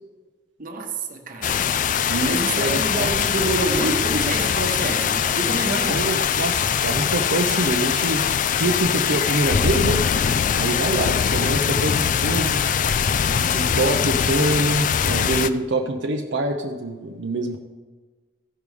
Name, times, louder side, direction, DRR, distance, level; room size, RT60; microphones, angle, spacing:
voice 1, 0.6-1.7 2.2-6.0, right 2 dB, 45° right, 3 dB, 1.2 m, -27 dB
sound 1, 1.4-15.5, left 7 dB, 45° left, 0.3 m, -22 dB
voice 2, 2.1-3.1 5.9-8.3 8.6-10.1 10.5-12.7 13.4-17.6, right 2 dB, 75° right, 2 dB, 0.7 m, -25 dB
15.0 x 5.3 x 4.8 m, 1.4 s
head